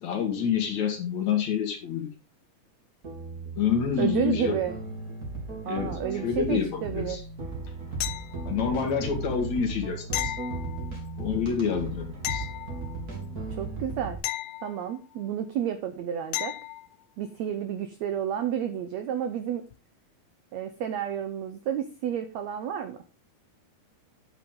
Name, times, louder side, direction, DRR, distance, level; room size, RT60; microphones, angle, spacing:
voice 1, 0.0-2.1 3.6-4.5 5.7-7.2 8.4-10.3 11.2-12.5, left 7 dB, 55° left, 3 dB, 2.9 m, -28 dB
sound 1, 3.0-14.2, right 3 dB, 25° right, 3.1 m, -36 dB
voice 2, 4.0-4.7 5.6-7.2 13.6-14.2 14.6-16.6 17.2-19.6 20.5-23.0, right 9 dB, 85° right, 9 dB, 1.5 m, -31 dB
sound 2, 8.0-8.8 10.1-11.2 12.2-13.3 14.2-15.3 16.3-16.9 19.7-19.8, left 16 dB, 80° left, 2.1 m, -35 dB
9.0 x 9.0 x 3.8 m, 0.31 s
omnidirectional pair, 4.2 m